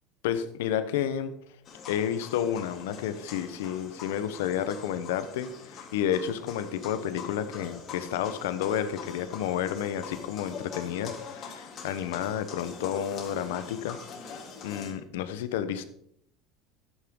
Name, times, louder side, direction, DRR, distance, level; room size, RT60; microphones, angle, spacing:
voice 1, 0.2-1.3 1.9-14.4 14.6-15.8, left 9 dB, 85° left, 12 dB, 1.0 m, -31 dB
sound 1, 1.6-14.9, left 6 dB, 45° left, 3.1 m, -44 dB
13.0 x 9.0 x 3.9 m, 0.70 s
supercardioid pair, 105°, 0 cm